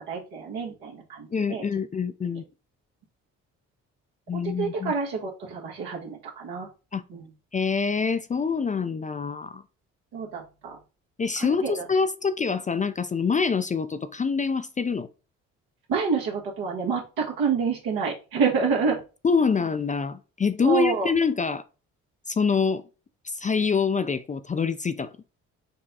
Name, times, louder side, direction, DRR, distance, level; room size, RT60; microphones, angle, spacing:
voice 1, 0.1-1.6 4.3-6.7 7.1-7.3 10.1-10.8 11.4-11.9 15.9-19.0 20.6-21.1, right 5 dB, 80° right, 1.5 m, -28 dB
voice 2, 1.3-2.4 4.3-4.9 6.9-7.0 7.5-9.6 11.2-15.1 19.2-21.6 22.3-22.8 23.2-25.1, left 5 dB, 20° left, 0.4 m, -25 dB
5.2 x 2.3 x 4.1 m
hypercardioid pair, 50°, 36 cm